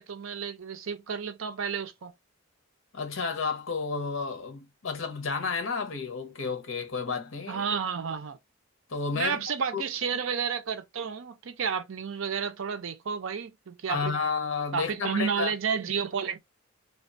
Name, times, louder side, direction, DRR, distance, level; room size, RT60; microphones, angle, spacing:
voice 1, 0.0-2.1 7.5-8.4 9.1-14.1 14.7-16.4, right 6 dB, 70° right, 0.5 m, -31 dB
voice 2, 2.9-7.7 8.9-9.4 9.7-9.8 13.9-15.5, left 5 dB, 65° left, 0.8 m, -31 dB
2.9 x 2.3 x 2.5 m
head